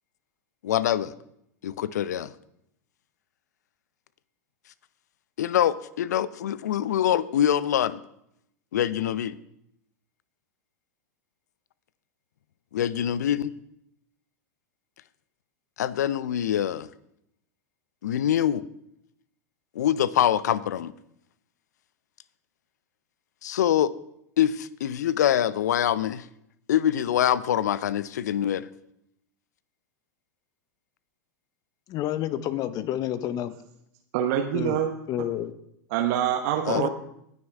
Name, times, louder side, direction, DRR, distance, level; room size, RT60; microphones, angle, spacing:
voice 1, 0.6-1.1 1.6-2.3 5.4-8.0 8.7-9.4 12.7-13.5 15.8-16.9 18.0-18.6 19.8-20.9 23.4-23.9 24.4-26.2 26.7-28.7 36.7-36.8, left 10 dB, 70° left, 18 dB, 0.5 m, -24 dB
voice 2, 31.9-33.5 34.5-34.8 35.1-35.5 36.7-36.9, left 12 dB, 40° left, 14 dB, 0.8 m, -29 dB
voice 3, 34.1-34.9 35.2-35.3 35.9-36.9, right 10 dB, 55° right, 2 dB, 1.0 m, -25 dB
19.0 x 6.5 x 3.6 m, 0.77 s
hypercardioid pair, 90°, 9 cm